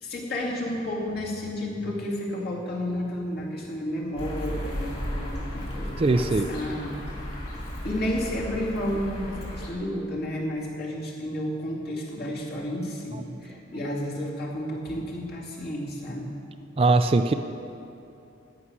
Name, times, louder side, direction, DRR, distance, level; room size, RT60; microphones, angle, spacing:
voice 1, 0.0-16.3, left 1 dB, 50° left, -3 dB, 2.4 m, -32 dB
sound 1, 4.2-9.7, equal, 30° left, 3.0 m, -35 dB
voice 2, 6.0-6.5 16.8-17.3, right 3 dB, 30° right, 8 dB, 0.4 m, -20 dB
14.0 x 6.3 x 9.6 m, 2.7 s
head